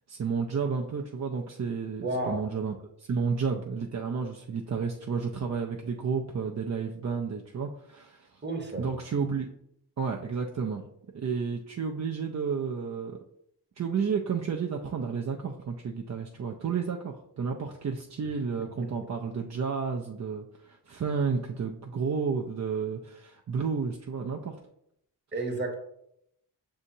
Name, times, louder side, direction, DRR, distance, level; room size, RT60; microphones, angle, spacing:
voice 1, 0.1-8.4 8.8-9.5 10.0-10.8 11.1-13.2 13.8-24.6, right 5 dB, 40° right, 1 dB, 0.4 m, -31 dB
voice 2, 2.0-2.5 8.4-8.9 25.3-25.7, right 2 dB, 25° right, 2 dB, 0.9 m, -31 dB
6.2 x 2.8 x 2.6 m, 0.77 s
cardioid pair, 55°, 43 cm